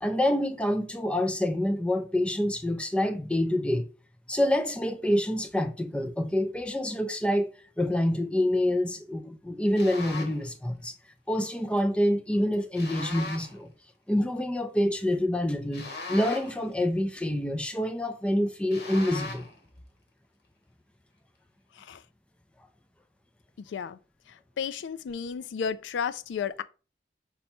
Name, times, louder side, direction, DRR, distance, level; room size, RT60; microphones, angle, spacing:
voice 1, 0.0-3.9 4.3-7.5 7.8-10.9 11.3-13.7 14.1-19.5, left 1 dB, 5° left, 0.3 m, -27 dB
sound 1, 9.8-10.4 12.7-13.6 15.7-16.7 18.7-19.6, left 3 dB, 65° left, 1.1 m, -39 dB
voice 2, 23.6-24.0 24.3-26.6, left 7 dB, 85° left, 0.3 m, -33 dB
5.4 x 2.2 x 4.2 m
head